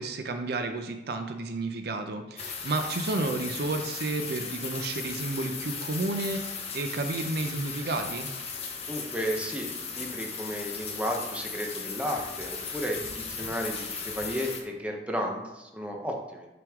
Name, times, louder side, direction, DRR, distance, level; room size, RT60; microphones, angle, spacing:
voice 1, 0.0-8.3, right 2 dB, 60° right, 6 dB, 0.5 m, -31 dB
sound 1, 2.4-14.6, left 5 dB, 35° left, 1.0 m, -37 dB
voice 2, 8.9-16.5, equal, 5° right, 1 dB, 0.8 m, -33 dB
6.0 x 5.1 x 3.6 m, 1.0 s
head